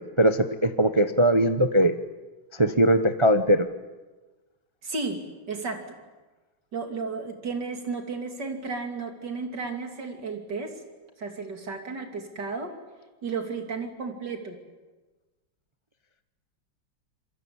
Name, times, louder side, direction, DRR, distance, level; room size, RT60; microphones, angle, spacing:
voice 1, 0.0-2.0 2.5-3.7, right 1 dB, 35° right, 9 dB, 0.4 m, -21 dB
voice 2, 4.8-5.8 6.7-10.8 11.2-12.8 13.2-14.6, right 4 dB, 65° right, 4 dB, 3.5 m, -33 dB
28.0 x 22.5 x 8.7 m, 1.2 s
omnidirectional pair, 2.0 m